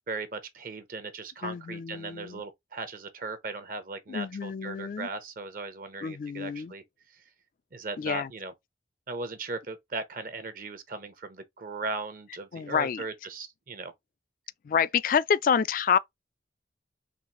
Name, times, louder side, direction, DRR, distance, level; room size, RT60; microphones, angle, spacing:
voice 1, 0.1-6.8 7.1-7.2 7.7-8.5 9.1-13.9, right 3 dB, 50° right, 0.8 m, -38 dB
voice 2, 1.4-2.4 4.1-5.1 6.0-6.7 8.0-8.3 12.5-13.0 14.6-16.0, left 7 dB, 50° left, 0.3 m, -28 dB
4.0 x 3.2 x 3.0 m
head